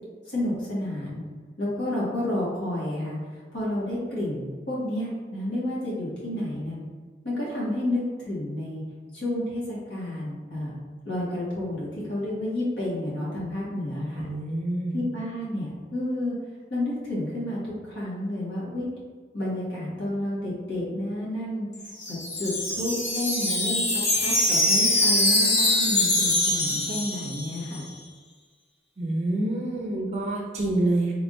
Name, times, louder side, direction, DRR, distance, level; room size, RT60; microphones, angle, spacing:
voice 1, 0.3-1.2 1.6-6.8 7.2-8.8 9.1-10.7 11.0-14.3 14.9-16.3 16.7-18.9 19.3-21.7 22.1-23.8 24.1-27.9, left 1 dB, 80° left, -7 dB, 1.5 m, -30 dB
voice 2, 14.2-15.0 29.0-31.1, right 1 dB, 35° right, -1 dB, 0.4 m, -27 dB
Wind chime, 21.7-27.7, left 1 dB, 40° left, 0.7 m, -23 dB
3.4 x 3.3 x 2.6 m, 1.5 s
head